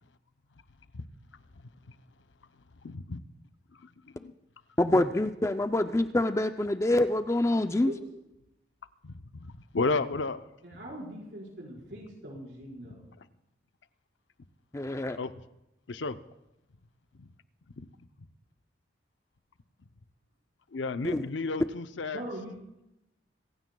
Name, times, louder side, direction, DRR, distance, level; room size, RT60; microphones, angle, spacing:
voice 1, 2.8-3.2 3.8-3.9 4.1-4.3 9.0-10.4 12.9-13.0 15.2-15.3 15.9-16.2 17.1-17.3 17.8-17.9 18.2-18.3 20.7-22.2, left 3 dB, 90° left, 11 dB, 0.7 m, -33 dB
voice 2, 4.8-7.9 14.7-15.2 21.0-21.2, left 1 dB, 15° left, 9 dB, 0.4 m, -26 dB
voice 3, 7.5-8.0 10.6-13.1 22.1-22.5, right 1 dB, 70° right, -3 dB, 4.8 m, -41 dB
25.5 x 15.5 x 2.3 m, 0.89 s
head